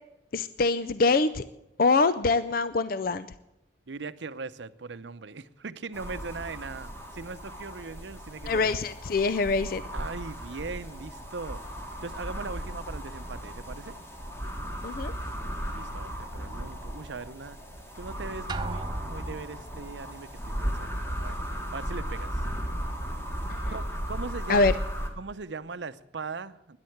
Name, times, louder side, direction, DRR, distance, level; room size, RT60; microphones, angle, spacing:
voice 1, 0.3-1.4 1.8-3.3 8.5-9.8 14.8-15.1 23.5-23.7 24.5-24.7, left 3 dB, 50° left, 14 dB, 0.5 m, -24 dB
voice 2, 3.9-8.8 9.9-14.0 15.6-17.6 18.0-21.4 21.7-22.4 23.7-24.7 25.2-26.8, right 4 dB, 80° right, 14 dB, 0.7 m, -40 dB
sound 1, 5.9-25.1, equal, 15° left, 2.0 m, -36 dB
Drum, 18.5-19.7, right 3 dB, 25° right, 0.5 m, -36 dB
13.0 x 11.0 x 7.9 m, 0.90 s
head